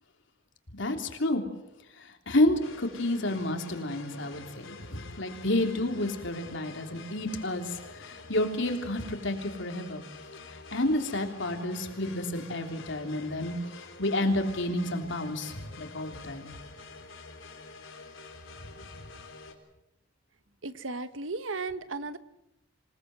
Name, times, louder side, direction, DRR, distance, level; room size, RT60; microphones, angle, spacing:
voice 1, 0.8-1.4 2.0-10.0 10.5-16.5, left 1 dB, 65° left, 4 dB, 3.5 m, -30 dB
sound 1, 2.6-19.5, left 3 dB, 85° left, 4.0 m, -47 dB
voice 2, 20.6-22.2, right 3 dB, 80° right, 13 dB, 1.3 m, -35 dB
27.5 x 19.0 x 7.9 m, 0.86 s
head